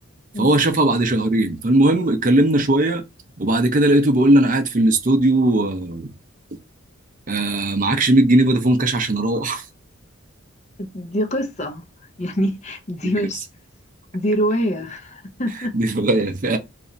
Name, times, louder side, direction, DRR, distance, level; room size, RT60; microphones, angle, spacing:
voice 1, 0.4-3.0 3.4-6.1 7.3-9.7 13.0-13.1 15.7-16.6, right 1 dB, 40° right, 0.6 m, -18 dB
voice 2, 10.8-11.8 12.2-13.5 14.1-15.8, equal, 30° left, 0.6 m, -24 dB
2.7 x 2.4 x 4.1 m
head